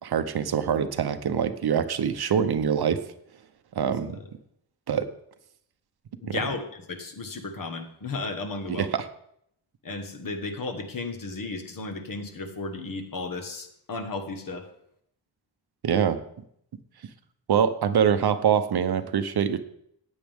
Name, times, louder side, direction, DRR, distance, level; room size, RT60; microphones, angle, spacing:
voice 1, 0.0-3.0 3.7-4.2 4.9-5.1 6.3-6.4 8.7-9.1 15.8-16.2 17.5-19.6, right 8 dB, 60° right, 10 dB, 0.8 m, -24 dB
voice 2, 6.2-8.9 9.8-14.7, left 3 dB, 50° left, 6 dB, 1.5 m, -34 dB
15.0 x 9.2 x 3.6 m, 0.71 s
wide cardioid pair, 155°, 44 cm